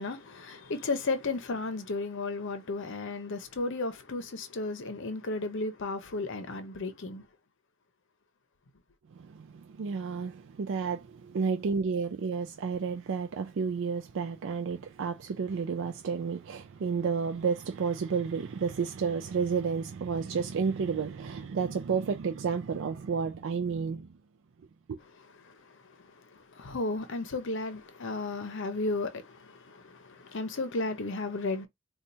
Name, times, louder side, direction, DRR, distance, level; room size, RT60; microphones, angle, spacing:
voice 1, 0.0-7.3 25.4-31.7, left 3 dB, 65° left, 0.7 m, -34 dB
voice 2, 9.2-24.1 24.9-25.0, right 5 dB, 60° right, 0.4 m, -31 dB
4.2 x 2.3 x 2.6 m
head